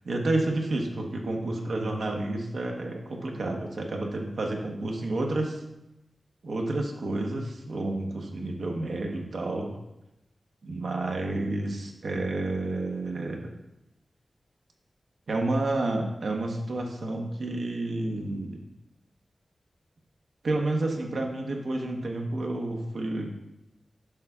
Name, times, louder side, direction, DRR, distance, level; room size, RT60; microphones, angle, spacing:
voice 1, 0.0-5.6 6.4-9.7 10.6-13.5 15.3-18.6 20.4-23.3, right 2 dB, 80° right, 2 dB, 1.1 m, -30 dB
10.5 x 6.5 x 2.4 m, 0.92 s
wide cardioid pair, 105°, 0 cm